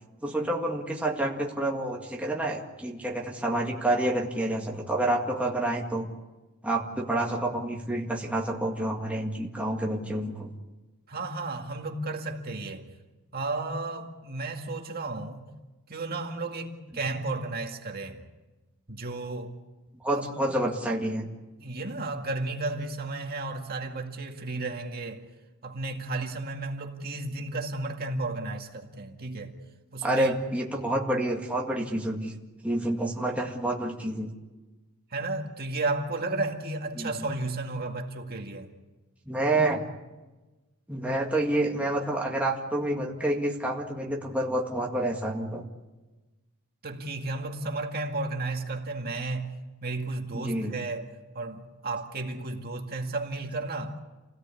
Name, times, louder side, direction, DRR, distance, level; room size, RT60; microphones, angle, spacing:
voice 1, 0.2-6.1 6.6-10.5 20.0-21.3 30.0-32.3 32.6-34.3 37.0-37.1 39.3-39.8 40.9-45.6 50.4-50.7, right 1 dB, 5° right, -2 dB, 2.0 m, -28 dB
voice 2, 11.1-12.9 13.3-15.4 15.9-18.2 18.9-19.5 20.1-20.3 21.6-25.2 25.6-29.5 29.9-30.3 35.1-38.7 46.8-49.5 49.8-51.1 51.3-54.0, right 2 dB, 45° right, 3 dB, 2.1 m, -33 dB
28.5 x 17.5 x 8.5 m, 1.2 s
head